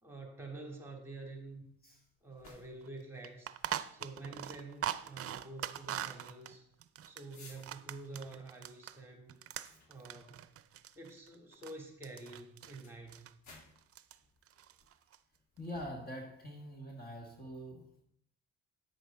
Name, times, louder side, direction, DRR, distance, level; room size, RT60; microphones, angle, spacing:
voice 1, 0.0-1.7 2.2-3.5 3.9-6.6 7.0-9.3 9.9-10.4 10.9-13.3, right 2 dB, 10° right, 3.1 m, -48 dB
sound 1, 1.0-16.9, left 2 dB, 75° left, 3.3 m, -64 dB
sound 2, 2.5-2.6 2.8-2.9 3.2-9.0 9.3-11.8 12.0-12.8 13.1-13.3 13.8-14.2 14.4-15.2, right 11 dB, 50° right, 0.6 m, -42 dB
voice 2, 15.6-18.0, equal, 30° left, 1.7 m, -44 dB
10.0 x 8.0 x 3.9 m
cardioid pair, 90°, 30 cm